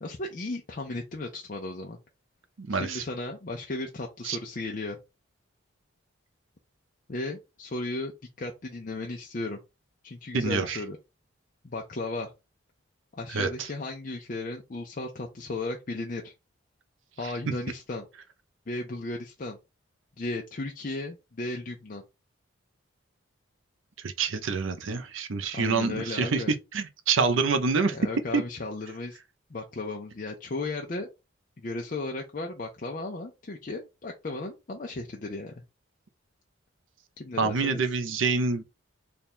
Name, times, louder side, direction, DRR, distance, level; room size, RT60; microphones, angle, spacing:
voice 1, 0.0-2.0 2.7-5.0 7.1-8.1 8.4-9.6 10.0-11.0 11.6-12.3 13.2-16.3 17.2-18.1 18.7-19.6 20.2-22.0 25.5-26.5 27.8-29.2 29.5-31.1 31.6-35.5 37.2-37.8, left 2 dB, 40° left, 0.5 m, -35 dB
voice 2, 2.6-3.0 4.2-4.4 10.3-10.8 13.3-13.5 24.0-26.4 26.7-28.0 28.3-28.4 37.4-38.6, right 4 dB, 70° right, 0.6 m, -26 dB
3.4 x 2.3 x 4.2 m
head